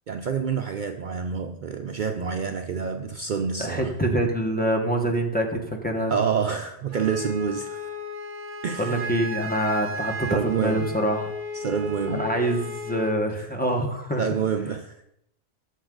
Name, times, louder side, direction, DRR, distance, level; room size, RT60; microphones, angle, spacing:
voice 1, 0.1-3.9 6.1-7.9 8.6-9.0 10.3-10.9 11.5-12.3 13.4-13.5 14.2-14.9, right 6 dB, 55° right, 6 dB, 0.7 m, -28 dB
voice 2, 3.6-6.1 8.8-11.3 12.1-14.2, right 1 dB, 10° left, 1 dB, 1.4 m, -25 dB
Wind instrument woodwind instrument, 6.9-13.2, left 1 dB, 75° right, 1.4 m, -35 dB
14.0 x 7.0 x 3.9 m, 0.77 s
omnidirectional pair, 1.1 m